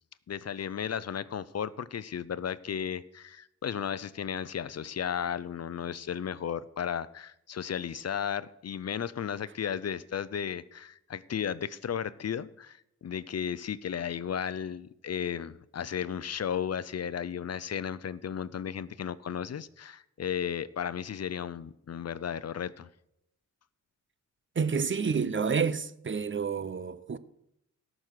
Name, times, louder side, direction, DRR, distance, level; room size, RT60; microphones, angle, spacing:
voice 1, 0.3-22.9, left 8 dB, 55° left, 0.6 m, -34 dB
voice 2, 24.6-27.2, right 6 dB, 40° right, 0.7 m, -29 dB
17.0 x 6.2 x 6.6 m
cardioid pair, 75°, 31 cm